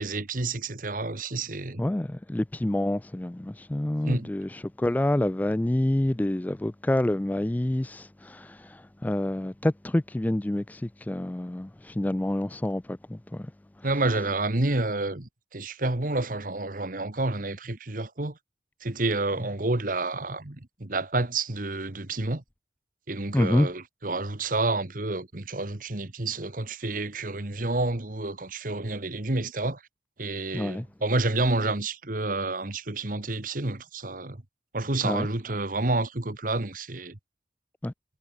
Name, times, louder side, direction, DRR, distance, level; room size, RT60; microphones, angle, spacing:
voice 1, 0.0-1.8 4.0-4.3 13.8-18.3 18.8-22.4 23.1-29.8 30.2-34.4 34.7-37.2, right 2 dB, 50° right, 1.7 m, -29 dB
voice 2, 1.8-13.5 23.3-23.7 30.5-30.9 35.0-35.3 37.8-37.9, left 1 dB, 10° left, 0.3 m, -27 dB
head